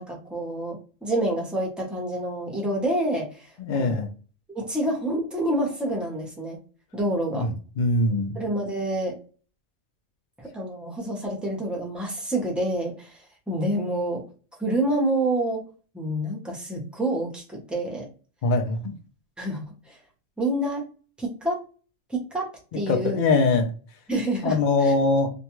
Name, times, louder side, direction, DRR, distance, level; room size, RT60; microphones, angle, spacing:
voice 1, 0.0-3.5 3.8-4.0 4.5-6.6 6.9-7.5 8.3-9.2 10.4-14.2 14.6-15.6 15.9-18.1 19.4-20.0 20.4-20.8 21.2-21.6 22.1-22.5 22.7-23.2 24.1-24.6 24.8-24.9, right 1 dB, ahead, -1 dB, 0.5 m, -27 dB
voice 2, 3.6-4.1 7.3-8.4 18.4-19.0 22.9-23.7 24.4-25.3, left 3 dB, 65° left, 5 dB, 0.4 m, -22 dB
2.5 x 2.3 x 2.9 m, 0.37 s
omnidirectional pair, 1.4 m